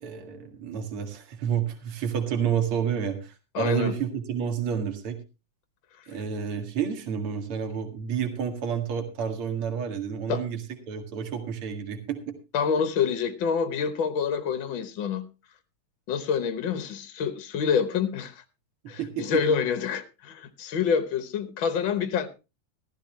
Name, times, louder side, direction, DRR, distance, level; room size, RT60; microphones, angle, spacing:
voice 1, 0.0-5.2 6.1-10.6 10.9-12.3 19.0-19.4, right 7 dB, 50° right, 5 dB, 2.7 m, -30 dB
voice 2, 3.5-3.9 10.3-10.4 12.5-15.2 16.1-18.4 18.9-22.3, left 6 dB, 60° left, 10 dB, 1.3 m, -27 dB
14.5 x 14.0 x 3.1 m, 0.29 s
omnidirectional pair, 3.4 m